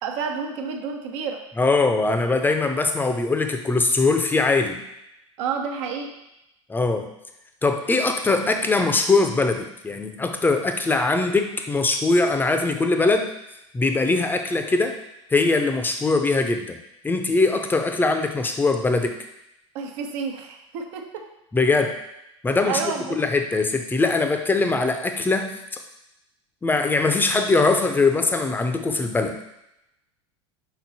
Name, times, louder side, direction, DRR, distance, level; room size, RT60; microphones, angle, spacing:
voice 1, 0.0-1.4 5.4-6.1 19.7-21.3 22.7-23.2, right 6 dB, 65° right, 3 dB, 1.1 m, -30 dB
voice 2, 1.6-4.8 6.7-7.1 7.6-13.3 13.7-15.0 15.3-16.8 17.0-19.2 21.5-22.0 22.4-25.5 26.6-29.4, left 3 dB, 10° left, 6 dB, 0.7 m, -21 dB
6.3 x 4.0 x 4.2 m, 0.85 s
hypercardioid pair, 90°, 16 cm